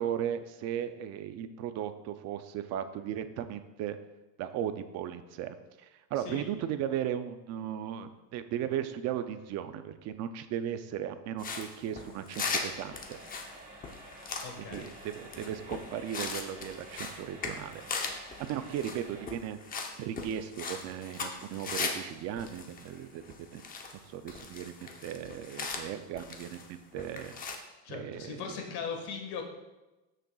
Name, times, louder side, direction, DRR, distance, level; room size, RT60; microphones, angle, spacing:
voice 1, 0.0-4.0 4.4-13.2 14.7-17.8 18.4-19.6 20.0-23.2 23.5-23.6 24.1-27.3 27.9-28.6, right 10 dB, 35° right, 10 dB, 0.4 m, -36 dB
voice 2, 6.2-6.5 14.4-14.9 27.8-29.4, left 6 dB, 55° left, 3 dB, 1.7 m, -39 dB
sound 1, 11.4-22.1 22.4-24.0 24.3-26.7 27.0-27.6, left 4 dB, 20° left, 0.7 m, -39 dB
sound 2, 12.5-19.3, right 1 dB, 15° right, 1.8 m, -50 dB
13.5 x 6.7 x 2.3 m, 1.1 s
cardioid pair, 150°, 48 cm